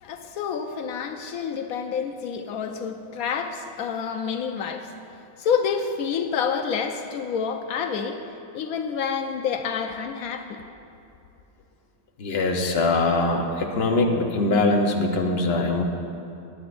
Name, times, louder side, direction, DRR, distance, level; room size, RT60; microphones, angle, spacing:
voice 1, 0.0-4.9 5.4-8.2 8.5-10.6, left 6 dB, 85° left, 5 dB, 1.1 m, -28 dB
voice 2, 12.2-15.8, left 2 dB, 50° left, 1 dB, 1.2 m, -22 dB
22.0 x 9.5 x 2.6 m, 2.7 s
omnidirectional pair, 1.5 m